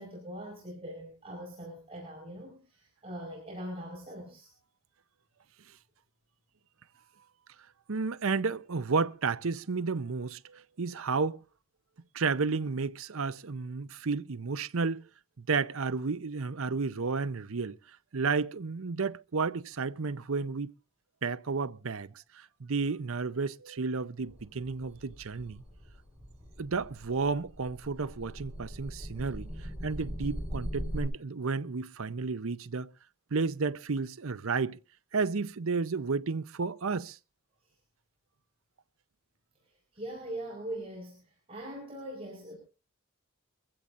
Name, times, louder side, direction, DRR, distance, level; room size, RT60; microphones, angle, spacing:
voice 1, 0.0-4.5 39.9-42.6, right 1 dB, 25° right, 4.8 m, -42 dB
voice 2, 7.9-11.4 12.1-15.1 15.4-17.8 18.1-20.7 21.2-25.6 26.6-32.9 33.3-34.8 35.1-37.2, right 4 dB, 70° right, 0.7 m, -32 dB
sound 1, 24.2-31.0, equal, 5° right, 7.5 m, -41 dB
22.5 x 15.5 x 2.6 m
head